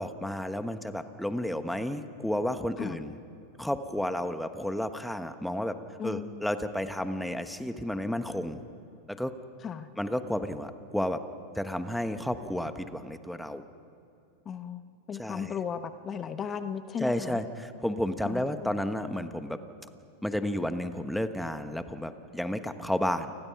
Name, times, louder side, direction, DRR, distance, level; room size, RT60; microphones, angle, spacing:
voice 1, 0.0-3.1 3.6-8.6 9.1-9.3 10.0-11.2 11.5-13.6 15.2-15.5 17.0-19.6 20.2-23.3, left 1 dB, ahead, 9 dB, 1.2 m, -32 dB
voice 2, 6.0-6.5 9.6-9.9 14.4-17.4 18.2-18.7, left 7 dB, 30° left, 10 dB, 1.1 m, -36 dB
29.0 x 20.5 x 5.9 m, 2.5 s
hypercardioid pair, 95°, 0 cm